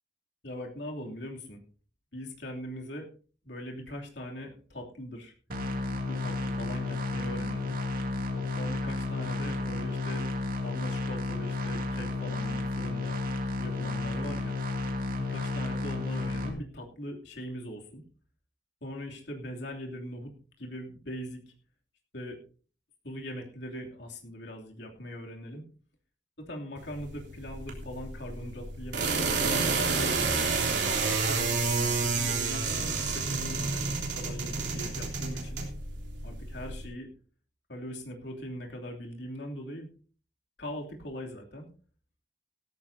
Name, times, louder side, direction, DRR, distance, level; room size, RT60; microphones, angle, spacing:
voice 1, 0.4-1.6 2.1-3.1 3.4-5.3 6.0-7.7 8.3-10.2 10.6-13.2 13.6-14.5 15.2-18.0 18.8-20.3 20.6-21.4 22.1-22.4 23.0-25.6 26.4-30.3 30.6-35.6 36.2-37.1 37.7-39.9 40.6-41.7, equal, 70° left, 0 dB, 2.9 m, -41 dB
sound 1, 5.5-16.5, left 2 dB, 50° right, 2.6 m, -32 dB
sound 2, 26.8-36.9, right 4 dB, 75° right, 3.4 m, -30 dB
17.0 x 14.0 x 2.8 m, 0.39 s
head